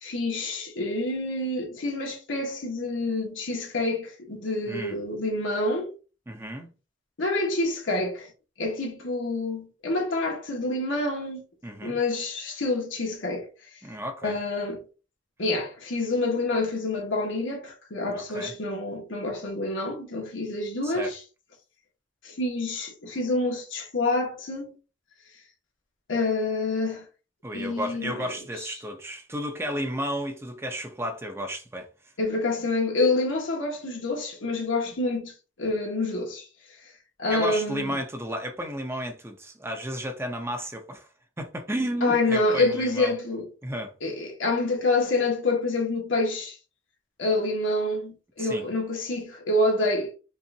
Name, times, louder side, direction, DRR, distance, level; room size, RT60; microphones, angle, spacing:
voice 1, 0.0-5.9 7.2-8.3 8.6-11.4 11.8-13.5 14.2-14.8 15.4-21.2 22.2-24.7 26.1-27.0 27.5-28.1 32.2-35.3 35.6-36.4 37.2-38.0 42.0-43.5 44.0-46.6 47.2-50.1, left 2 dB, 80° left, 1.3 m, -27 dB
voice 2, 4.7-5.0 6.3-6.7 11.6-12.0 13.8-14.4 18.1-18.5 20.8-21.1 27.4-31.9 37.3-41.1 41.4-43.2 43.6-43.9 48.4-48.6, equal, 15° right, 0.6 m, -33 dB
5.3 x 2.5 x 2.8 m
head